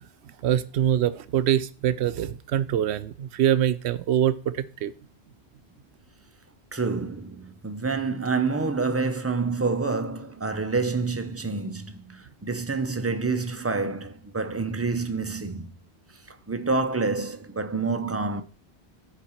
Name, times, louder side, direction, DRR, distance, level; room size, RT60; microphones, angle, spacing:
voice 1, 0.4-4.9, right 10 dB, 85° right, 0.9 m, -24 dB
voice 2, 6.7-15.7 16.3-18.4, right 4 dB, 20° right, 0.4 m, -28 dB
11.5 x 4.9 x 4.4 m
omnidirectional pair, 1.1 m